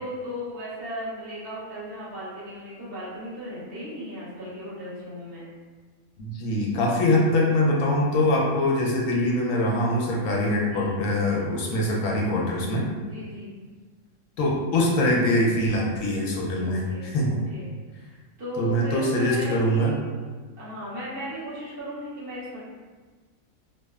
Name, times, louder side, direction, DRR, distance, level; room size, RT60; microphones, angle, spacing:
voice 1, 0.0-5.5 10.7-11.0 13.0-13.5 16.6-17.2 17.5-17.7 18.4-20.0 20.6-22.6, equal, 50° right, -9 dB, 0.8 m, -36 dB
voice 2, 6.2-12.9 14.4-17.4 18.6-20.0, left 1 dB, 80° left, -2 dB, 1.0 m, -23 dB
2.8 x 2.0 x 2.2 m, 1.4 s
omnidirectional pair, 1.4 m